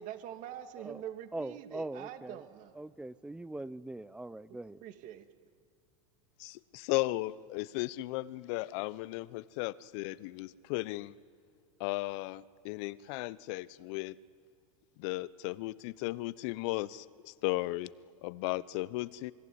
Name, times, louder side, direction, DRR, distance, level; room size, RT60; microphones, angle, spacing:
voice 1, 0.0-2.7 4.5-5.2, right 11 dB, 50° right, 7 dB, 2.6 m, -45 dB
voice 2, 1.3-2.4 2.7-4.8, right 2 dB, 5° right, 18 dB, 0.7 m, -42 dB
voice 3, 6.4-11.1 11.8-14.1 15.0-17.9 18.2-19.3, left 19 dB, 60° left, 18 dB, 0.9 m, -35 dB
28.0 x 22.0 x 9.6 m, 2.2 s
hypercardioid pair, 110°, 18 cm